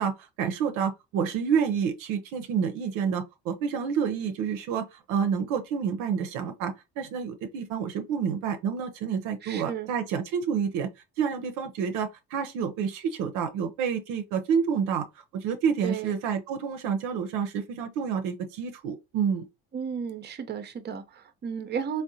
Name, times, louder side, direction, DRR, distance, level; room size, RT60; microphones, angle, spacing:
voice 1, 0.0-10.9 11.2-15.1 15.3-19.5, right 7 dB, 70° right, 0.6 m, -29 dB
voice 2, 9.4-9.9 15.8-16.1 19.7-22.0, right 7 dB, 30° right, 0.6 m, -33 dB
3.5 x 2.1 x 2.7 m
hypercardioid pair, 65°, 34 cm